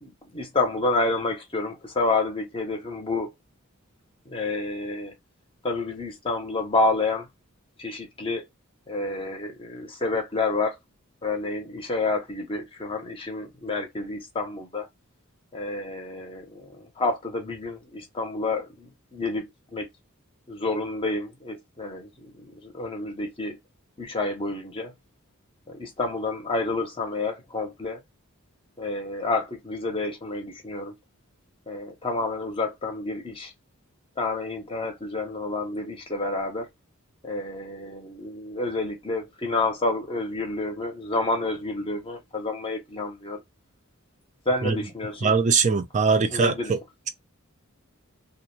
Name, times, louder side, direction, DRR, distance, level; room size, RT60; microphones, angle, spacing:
voice 1, 0.0-3.3 4.3-5.1 5.6-7.3 7.8-8.4 8.9-10.8 11.2-14.9 15.5-19.9 20.5-23.6 24.0-24.9 25.7-28.0 28.8-30.9 31.7-33.5 34.2-36.7 37.2-43.4 44.5-45.3 46.3-46.7, left 2 dB, 25° left, 0.7 m, -29 dB
voice 2, 45.2-46.8, right 5 dB, 35° right, 0.4 m, -21 dB
2.4 x 2.1 x 3.0 m
head